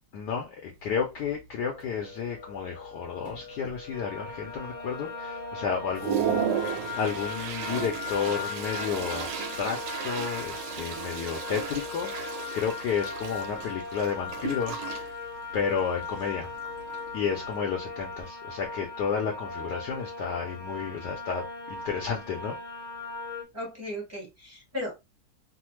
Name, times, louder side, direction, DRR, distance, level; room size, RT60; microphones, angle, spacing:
voice 1, 0.1-15.1 15.5-16.5 17.1-22.6, left 6 dB, 70° left, 1.1 m, -32 dB
Toilet flush, 0.7-0.8 1.3-1.5 1.8-2.4 2.9-3.0 3.3-4.0 4.5-4.6 5.1-5.2 5.6-17.6, right 8 dB, 70° right, 1.2 m, -35 dB
sound 1, 1.5-6.8, left 2 dB, 50° right, 0.6 m, -47 dB
sound 2, 3.9-23.4, left 4 dB, 90° left, 1.5 m, -38 dB
voice 2, 23.5-24.9, left 1 dB, 10° right, 0.9 m, -36 dB
3.3 x 2.1 x 3.0 m
omnidirectional pair, 2.2 m